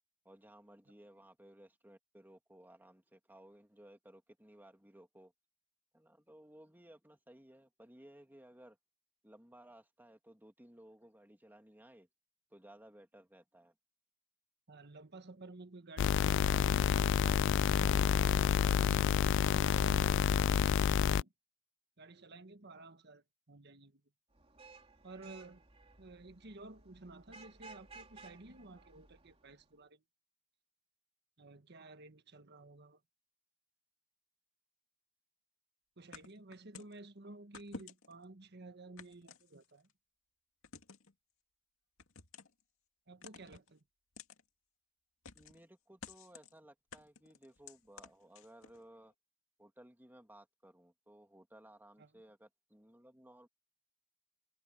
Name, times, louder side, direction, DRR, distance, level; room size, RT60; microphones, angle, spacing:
voice 1, 0.2-5.3 5.9-8.8 9.2-12.1 12.5-13.7 45.3-49.1 49.6-53.5, right 1 dB, 10° right, 2.4 m, -59 dB
voice 2, 14.7-19.1 19.5-20.5 20.8-21.3 22.0-24.0 25.0-25.6 26.0-30.0 31.4-33.0 36.0-39.9 43.1-43.8 52.0-52.1, right 2 dB, 55° right, 1.4 m, -53 dB
sound 1, 16.0-21.2, left 8 dB, 60° left, 0.3 m, -29 dB
Vehicle horn car horn honking / Traffic noise roadway noise, 24.3-29.6, right 4 dB, 30° right, 2.8 m, -57 dB
sound 2, 36.1-37.0 37.5-38.2 39.0-39.9 40.6-41.1 42.0-42.6 43.2-43.7 44.2-44.4 45.2-45.6 46.0-46.5 46.9-48.8, left 4 dB, 85° left, 2.2 m, -52 dB
head